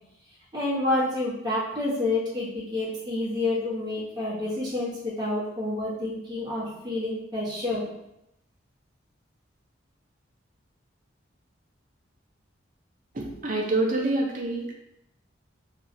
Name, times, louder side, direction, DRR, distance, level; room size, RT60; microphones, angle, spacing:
voice 1, 0.5-7.8, left 2 dB, 20° right, -10 dB, 0.9 m, -28 dB
voice 2, 13.1-14.7, right 2 dB, 40° right, -1 dB, 0.6 m, -26 dB
2.7 x 2.3 x 4.0 m, 0.82 s
head